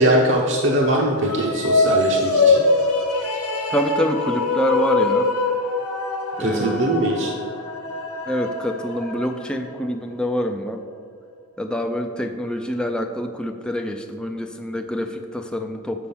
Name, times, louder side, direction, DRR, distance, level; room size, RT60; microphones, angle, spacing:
voice 1, 0.0-2.7 6.4-7.3, right 1 dB, 55° right, -1 dB, 0.7 m, -21 dB
sound 1, 1.2-9.7, left 3 dB, 70° left, 1.1 m, -23 dB
voice 2, 3.7-5.3 6.4-7.2 8.3-10.8 11.6-16.1, equal, 5° left, 4 dB, 0.3 m, -26 dB
6.1 x 5.6 x 6.8 m, 2.2 s
head